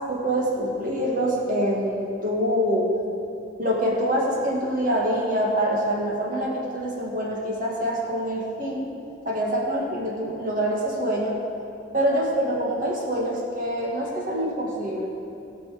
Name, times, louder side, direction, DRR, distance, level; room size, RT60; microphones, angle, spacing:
voice 1, 0.1-2.9 3.6-8.8 9.3-11.4 11.9-15.1, equal, 45° right, -3 dB, 2.1 m, -25 dB
18.0 x 6.1 x 5.2 m, 2.6 s
head